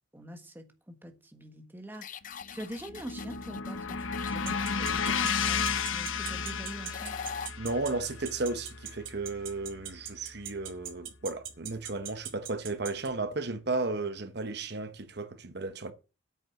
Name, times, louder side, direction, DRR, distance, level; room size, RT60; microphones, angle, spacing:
voice 1, 0.1-2.1 2.5-7.2, right 1 dB, 10° right, 1.4 m, -45 dB
sound 1, 1.9-7.5, left 7 dB, 45° left, 0.5 m, -44 dB
sound 2, 2.4-10.7, left 6 dB, 85° left, 1.0 m, -34 dB
sound 3, 4.3-13.1, right 10 dB, 85° right, 2.3 m, -39 dB
voice 2, 7.6-15.9, right 3 dB, 55° right, 1.0 m, -34 dB
8.8 x 6.7 x 7.0 m
head